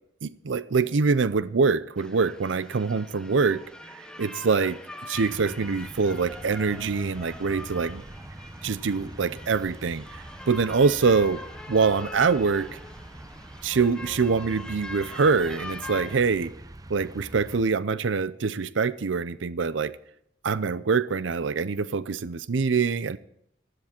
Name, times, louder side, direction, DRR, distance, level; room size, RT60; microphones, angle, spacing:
voice 1, 0.2-3.6 3.9-8.0 8.6-11.4 11.7-12.8 13.6-16.5 16.9-19.9 20.4-23.2, right 5 dB, 70° right, 0.6 m, -24 dB
sound 1, 2.0-16.2, left 2 dB, 5° left, 1.1 m, -43 dB
sound 2, 5.1-17.6, right 1 dB, 20° right, 0.5 m, -44 dB
16.0 x 13.5 x 4.4 m
head